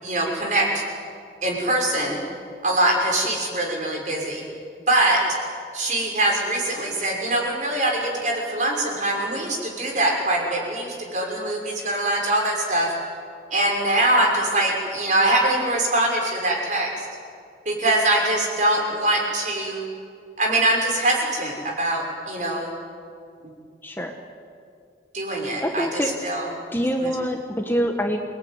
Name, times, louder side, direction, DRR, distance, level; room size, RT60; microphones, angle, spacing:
voice 1, 0.0-0.8 1.4-2.2 2.6-4.4 4.9-5.2 5.7-12.9 13.5-17.1 17.6-19.9 20.4-22.7 25.1-25.9 26.2-26.5 27.0-27.1, right 1 dB, 45° right, 0 dB, 6.3 m, -23 dB
voice 2, 25.6-26.1 26.7-28.2, equal, 10° left, 3 dB, 1.5 m, -25 dB
28.5 x 19.5 x 9.6 m, 2.3 s
head